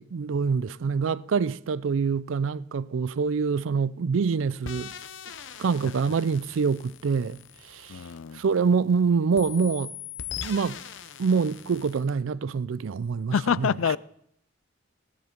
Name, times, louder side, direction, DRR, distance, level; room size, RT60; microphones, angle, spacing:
voice 1, 0.0-4.9 5.6-7.4 7.7-8.0 8.3-9.9 10.4-10.8 11.2-13.3 13.6-13.7, right 5 dB, 75° right, 0.4 m, -25 dB
sound 1, 4.7-8.9 9.4-12.1, left 8 dB, 65° left, 0.8 m, -41 dB
voice 2, 7.9-8.4 13.3-14.0, left 7 dB, 85° left, 0.4 m, -26 dB
16.5 x 9.9 x 5.2 m
head